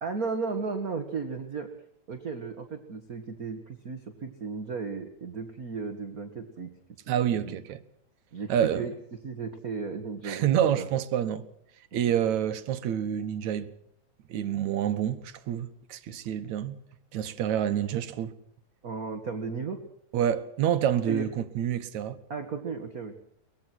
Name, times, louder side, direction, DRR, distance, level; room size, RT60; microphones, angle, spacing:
voice 1, 0.0-1.7 2.1-6.7 7.3-7.6 8.3-8.9 9.2-10.5 10.8-10.9 11.9-12.0 18.8-19.8 21.0-21.3 22.3-23.1, right 4 dB, 35° right, 1.7 m, -35 dB
voice 2, 7.1-7.8 8.5-8.9 10.2-11.4 11.9-13.7 14.3-16.8 17.1-18.3 20.1-22.2, right 10 dB, 70° right, 2.5 m, -28 dB
23.5 x 20.0 x 6.1 m
omnidirectional pair, 3.4 m